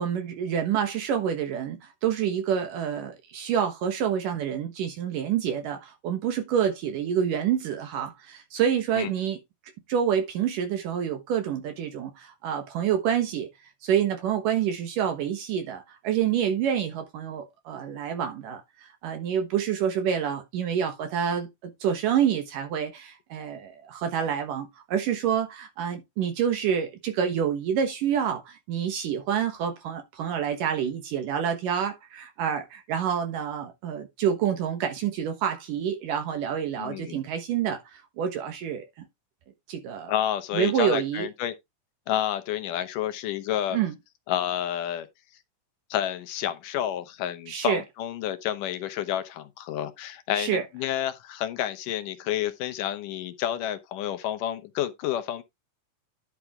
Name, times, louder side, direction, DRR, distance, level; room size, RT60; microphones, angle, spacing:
voice 1, 0.0-9.4 9.9-38.9 39.7-40.1 40.5-41.3 43.7-43.9 47.5-47.8 50.3-50.6, right 8 dB, 75° right, 2.9 m, -27 dB
voice 2, 36.8-37.2 40.1-41.5 42.1-43.8 44.3-45.1 45.9-55.4, left 11 dB, 75° left, 2.4 m, -30 dB
11.0 x 5.8 x 3.6 m
omnidirectional pair, 3.9 m